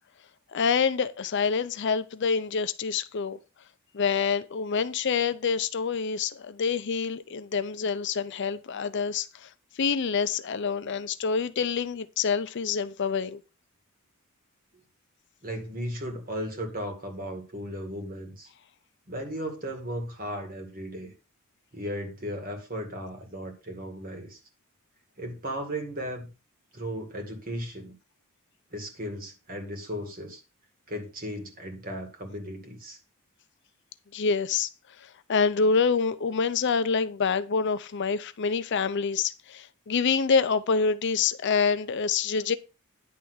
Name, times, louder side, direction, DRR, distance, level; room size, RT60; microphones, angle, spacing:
voice 1, 0.5-3.4 3.9-9.5 9.8-13.4 34.1-34.7 35.0-42.6, left 5 dB, 55° left, 0.5 m, -26 dB
voice 2, 15.4-18.5 19.1-21.1 21.7-24.4 25.2-26.3 26.7-27.9 28.7-30.4 30.9-33.0, equal, 40° right, 2.1 m, -36 dB
10.0 x 3.4 x 6.3 m
head